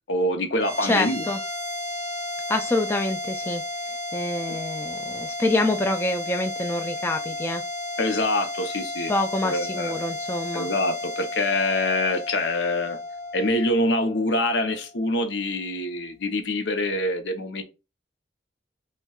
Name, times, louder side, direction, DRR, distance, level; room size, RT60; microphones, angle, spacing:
voice 1, 0.1-1.2 8.0-9.1 9.4-9.9 10.5-13.0 13.3-17.6, left 1 dB, 80° left, 0.7 m, -25 dB
sound 1, 0.6-15.2, left 2 dB, 40° left, 0.9 m, -33 dB
voice 2, 0.8-1.4 2.5-3.6 4.1-7.6 9.1-10.7, left 2 dB, 15° left, 0.3 m, -26 dB
5.5 x 2.2 x 2.3 m
head